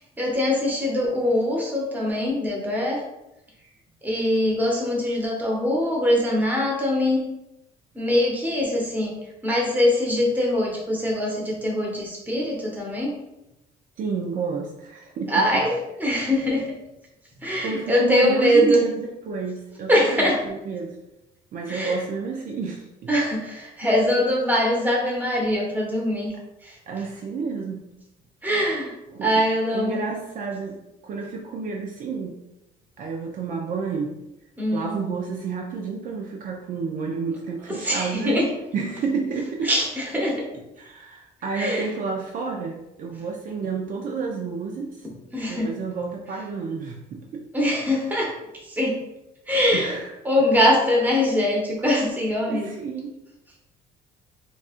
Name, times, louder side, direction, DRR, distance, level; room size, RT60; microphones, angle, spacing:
voice 1, 0.2-3.0 4.0-7.2 7.9-9.2 9.4-13.1 15.3-16.8 17.4-18.8 19.9-20.4 21.7-22.0 23.1-26.3 26.6-26.8 28.4-30.0 34.6-35.0 37.7-38.5 39.6-40.5 41.6-41.9 43.2-43.3 45.3-45.7 47.5-48.3 48.6-49.0 49.5-50.0 50.2-52.7, left 1 dB, 10° right, -2 dB, 0.9 m, -22 dB
voice 2, 14.0-15.5 17.6-21.0 21.5-22.9 26.9-27.9 29.1-29.3 29.7-32.4 33.0-34.1 34.7-39.7 40.8-45.1 45.5-47.4 49.7-50.1 52.5-53.1, right 5 dB, 55° right, 1 dB, 0.5 m, -30 dB
4.0 x 2.4 x 2.4 m, 0.91 s
cardioid pair, 110°, 17 cm